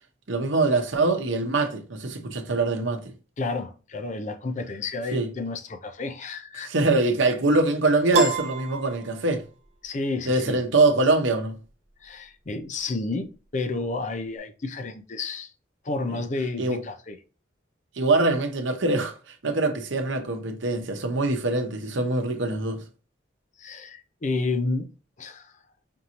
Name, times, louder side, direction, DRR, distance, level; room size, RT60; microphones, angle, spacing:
voice 1, 0.3-3.0 5.1-5.3 6.6-9.4 10.3-11.6 16.1-16.2 16.6-16.8 18.0-22.8, right 2 dB, 70° right, 0.8 m, -23 dB
voice 2, 3.4-6.7 9.8-10.6 12.0-15.5 15.8-17.2 23.6-24.9 25.2-25.5, left 3 dB, 40° left, 0.5 m, -31 dB
Piano, 8.1-9.7, right 3 dB, 35° right, 0.7 m, -27 dB
5.2 x 2.7 x 2.9 m
head